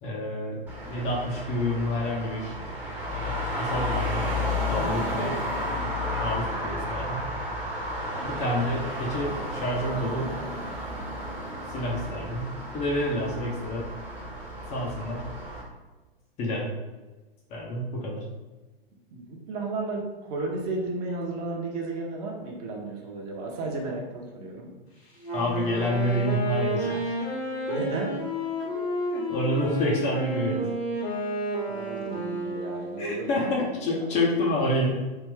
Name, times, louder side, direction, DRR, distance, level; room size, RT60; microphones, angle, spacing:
voice 1, 0.0-2.5 3.1-4.3 4.7-5.4 6.2-7.3 8.2-10.3 11.7-13.9 14.7-15.3 16.4-16.7 17.5-18.2 25.3-27.1 27.7-27.8 29.1-30.6 33.0-35.0, left 1 dB, 25° left, -3 dB, 0.6 m, -28 dB
Traffic noise roadway noise, 0.7-15.6, left 1 dB, 5° right, 0.8 m, -32 dB
voice 2, 19.1-20.0 20.3-24.7 27.7-28.1 31.7-33.3, right 3 dB, 35° right, 0 dB, 0.8 m, -33 dB
Wind instrument woodwind instrument, 25.2-33.1, right 1 dB, 85° left, 1.5 m, -31 dB
3.4 x 2.4 x 3.3 m, 1.2 s
figure-of-eight pair, 110°, 30 cm